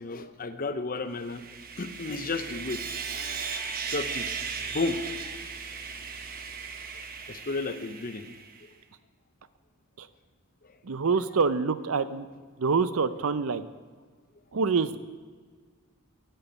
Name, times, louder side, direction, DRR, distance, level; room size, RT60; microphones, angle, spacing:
voice 1, 0.0-1.4 1.8-2.8 3.9-4.3 4.6-5.0 7.3-8.3, left 3 dB, 40° left, 11 dB, 0.7 m, -32 dB
Sawing, 1.2-8.6, right 5 dB, 40° right, 0.9 m, -37 dB
voice 2, 10.8-12.3 12.6-13.6 14.5-15.0, right 5 dB, 65° right, 14 dB, 0.6 m, -26 dB
9.1 x 9.1 x 8.2 m, 1.5 s
head